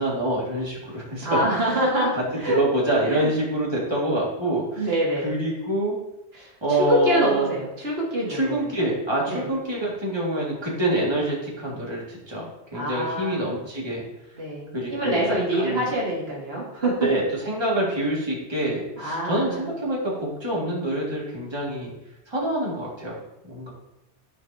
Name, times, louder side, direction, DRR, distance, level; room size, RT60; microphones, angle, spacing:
voice 1, 0.0-1.3 2.5-4.9 5.2-6.0 6.6-7.5 8.3-14.0 14.7-15.9 17.0-21.9 22.3-23.2 23.4-23.7, right 1 dB, 25° right, -5 dB, 2.0 m, -26 dB
voice 2, 1.2-2.6 3.1-3.3 4.8-5.4 6.3-6.5 6.8-8.7 9.3-9.5 12.7-13.6 14.4-17.1 19.0-19.6, right 1 dB, 65° right, -4 dB, 1.8 m, -25 dB
13.5 x 4.6 x 2.7 m, 0.92 s
omnidirectional pair, 1.1 m